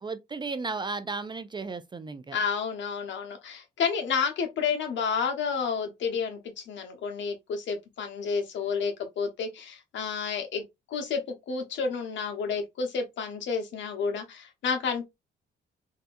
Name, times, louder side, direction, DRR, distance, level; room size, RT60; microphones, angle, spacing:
voice 1, 0.0-2.4, right 4 dB, 25° right, 0.4 m, -34 dB
voice 2, 2.3-10.6 10.9-11.2 11.5-15.1, left 5 dB, 70° left, 1.0 m, -30 dB
3.4 x 2.8 x 2.5 m
cardioid pair, 90°, 20 cm